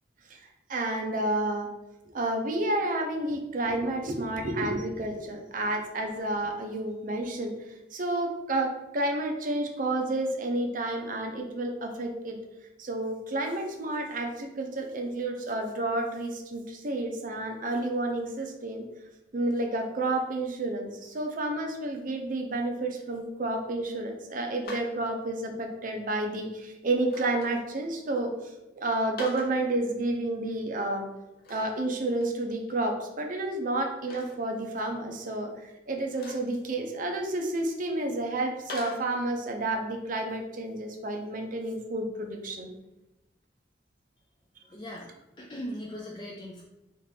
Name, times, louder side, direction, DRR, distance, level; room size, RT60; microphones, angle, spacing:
voice 1, 0.7-1.7 2.1-12.4 12.8-18.8 19.3-28.3 28.8-31.0 31.5-42.7, right 2 dB, 50° right, 3 dB, 0.6 m, -30 dB
sound 1, 24.6-24.9 27.0-27.5 29.0-29.6 31.4-31.8 32.2-32.3 32.7-32.8 34.1-34.4 36.1-36.5 38.7-39.1, left 1 dB, 55° left, 0.8 m, -40 dB
voice 2, 44.6-46.6, equal, 25° left, -2 dB, 0.4 m, -40 dB
4.3 x 2.5 x 3.3 m, 0.98 s
head